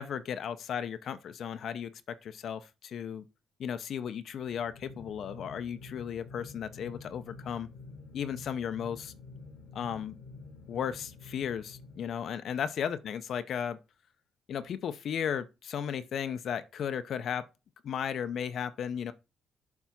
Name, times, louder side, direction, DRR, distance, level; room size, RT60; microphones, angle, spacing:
voice 1, 0.0-3.2 3.6-7.7 8.1-9.1 9.7-10.2 10.7-13.8 14.5-17.5 17.8-19.1, left 8 dB, 65° left, 0.7 m, -35 dB
sound 1, 4.3-12.7, left 3 dB, 85° left, 1.5 m, -49 dB
7.2 x 3.5 x 5.9 m
cardioid pair, 90°, 0 cm